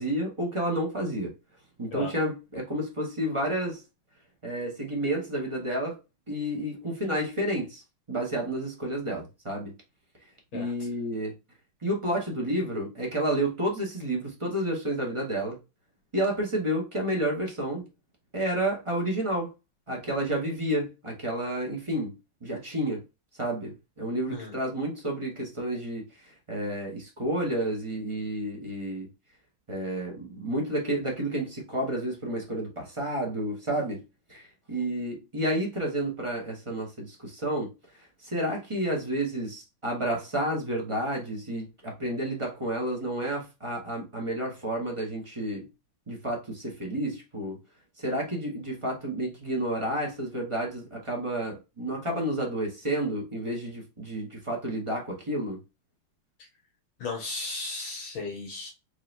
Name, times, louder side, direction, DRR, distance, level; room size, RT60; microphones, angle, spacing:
voice 1, 0.0-1.3 1.8-3.8 4.4-6.0 6.3-7.8 8.1-9.7 10.5-11.3 11.8-15.6 16.1-17.8 18.3-19.5 19.9-22.1 22.4-23.0 23.4-29.1 29.7-34.0 34.3-37.7 38.2-45.7 46.1-47.6 48.0-55.6, right 1 dB, 25° right, 0.6 m, -30 dB
voice 2, 57.0-58.7, left 3 dB, 70° left, 1.8 m, -35 dB
4.5 x 3.2 x 2.5 m
omnidirectional pair, 2.3 m